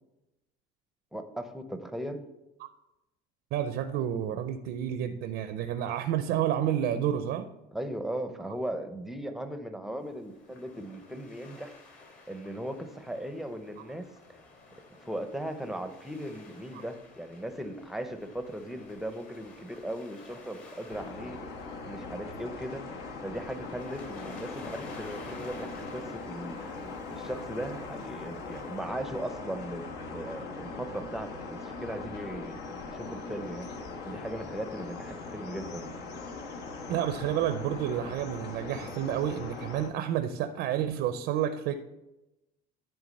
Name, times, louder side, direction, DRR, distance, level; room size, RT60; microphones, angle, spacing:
voice 1, 1.1-2.2 7.7-11.7 12.3-14.0 15.0-21.4 21.8-22.8 23.2-26.7 27.1-33.7 34.0-36.0, right 1 dB, ahead, 7 dB, 0.7 m, -38 dB
voice 2, 3.5-7.5 36.9-41.7, right 10 dB, 70° right, 9 dB, 0.6 m, -30 dB
Waves surf, 10.0-28.8, left 3 dB, 50° left, 2.9 m, -53 dB
sound 1, 20.9-39.9, left 3 dB, 70° left, 1.2 m, -40 dB
10.5 x 3.6 x 5.3 m, 0.96 s
cardioid pair, 125°, 18 cm